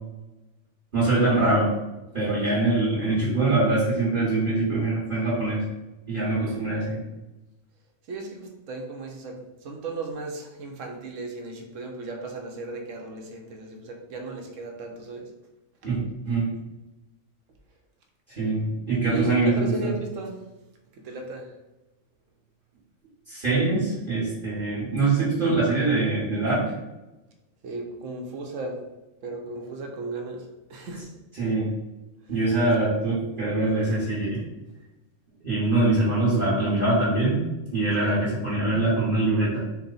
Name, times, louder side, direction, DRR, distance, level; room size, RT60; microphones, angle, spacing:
voice 1, 0.9-1.7 2.1-5.6 6.1-7.0 15.8-16.0 16.3-16.5 18.4-19.9 23.3-26.6 31.3-31.7 32.3-34.4 35.4-37.4 37.7-39.6, right 2 dB, 40° right, -10 dB, 1.4 m, -23 dB
voice 2, 8.1-15.2 19.1-20.4 21.0-21.5 27.6-28.8 29.2-30.4 30.7-31.1 32.6-32.7 38.0-38.2, right 3 dB, 85° right, 2 dB, 1.1 m, -35 dB
4.3 x 2.2 x 3.9 m, 1.0 s
omnidirectional pair, 1.3 m